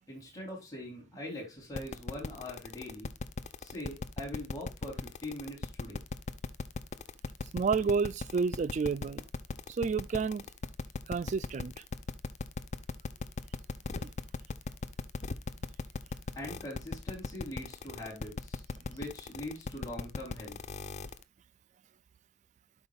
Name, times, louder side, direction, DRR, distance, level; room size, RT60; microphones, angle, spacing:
voice 1, 0.1-3.1 3.6-6.0 16.4-20.6, left 1 dB, 20° left, 3.7 m, -42 dB
sound 1, 1.7-21.2, left 3 dB, 40° left, 0.5 m, -37 dB
voice 2, 7.5-9.2 9.7-10.4 11.1-11.7 14.0-14.1, right 5 dB, 40° right, 0.3 m, -30 dB
11.5 x 5.2 x 2.4 m
head